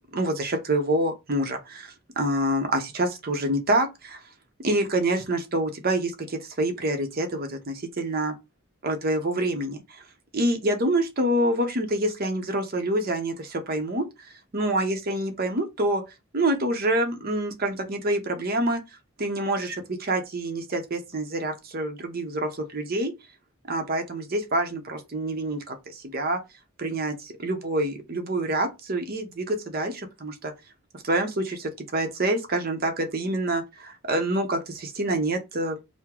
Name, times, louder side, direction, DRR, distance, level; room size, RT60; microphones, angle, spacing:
voice 1, 0.1-4.2 4.6-8.3 8.8-9.8 10.3-14.0 14.5-16.0 16.3-18.8 19.2-19.8 20.0-23.1 23.7-26.4 26.8-30.5 31.0-35.8, right 1 dB, 50° right, 0.8 m, -26 dB
4.7 x 2.2 x 3.6 m
head